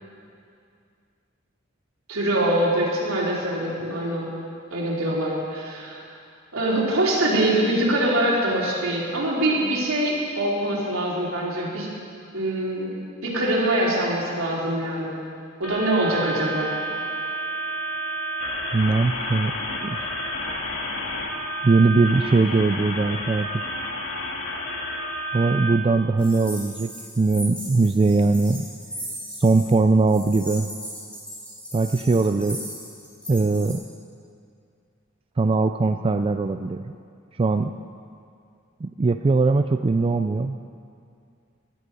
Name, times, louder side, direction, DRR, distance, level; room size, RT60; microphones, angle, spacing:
voice 1, 2.1-4.3 4.7-6.0 6.5-11.9 12.3-12.9 13.2-15.2 15.6-16.7 32.5-32.6, right 1 dB, 75° right, -5 dB, 3.9 m, -24 dB
sound 1, 15.6-25.7, equal, 65° left, 1.9 m, -30 dB
voice 2, 18.7-19.5 19.8-20.1 21.6-23.5 25.3-26.9 27.2-28.7 29.4-30.7 31.7-32.6 33.3-33.8 35.4-36.9 37.4-37.7 38.8-40.6, right 3 dB, 25° right, 8 dB, 0.3 m, -20 dB
sound 2, 26.2-29.7 30.1-33.7, equal, 5° left, 4.2 m, -38 dB
16.5 x 13.0 x 5.4 m, 2.4 s
head